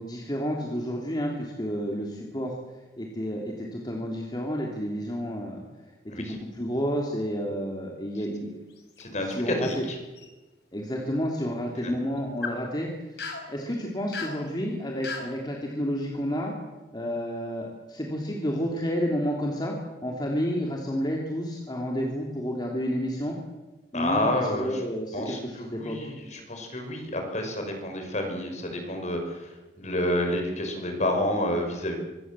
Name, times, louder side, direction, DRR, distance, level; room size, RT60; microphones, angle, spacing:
voice 1, 0.0-5.6 6.2-8.6 9.3-9.8 10.7-16.5 16.9-23.4 23.9-26.1, equal, 25° left, -1 dB, 3.2 m, -30 dB
sound 1, 8.7-9.4 9.6-10.3 12.2-12.6 13.2-13.5 14.1-14.4 15.0-15.3, left 4 dB, 70° left, 5.2 m, -36 dB
voice 2, 9.0-10.0 11.8-11.9 23.9-24.8 25.1-32.0, left 1 dB, 40° left, 4 dB, 5.7 m, -29 dB
25.0 x 23.0 x 7.6 m, 1.2 s
head